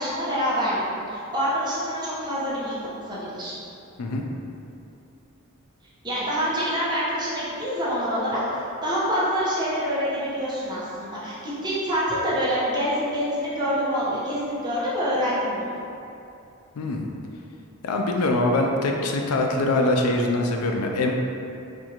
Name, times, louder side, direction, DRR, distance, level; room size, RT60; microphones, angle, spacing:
voice 1, 0.0-2.8 3.1-3.5 6.0-11.4 11.6-15.8, equal, 20° right, -9 dB, 0.8 m, -26 dB
voice 2, 17.8-21.1, left 2 dB, 85° left, 2 dB, 0.4 m, -23 dB
4.4 x 2.4 x 2.9 m, 2.6 s
head